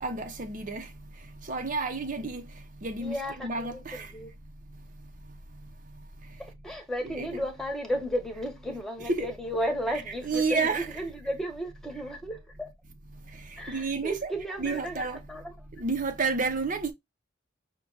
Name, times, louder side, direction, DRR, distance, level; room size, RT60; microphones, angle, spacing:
voice 1, 0.0-0.9 1.5-2.4 2.8-4.1 7.0-7.3 9.0-9.3 9.9-10.9 13.7-14.3 14.6-15.2 15.8-16.9, right 4 dB, 45° right, 0.7 m, -30 dB
voice 2, 3.0-3.8 4.1-4.3 6.6-12.7 13.6-15.5, equal, ahead, 1.0 m, -34 dB
5.7 x 2.3 x 3.8 m
head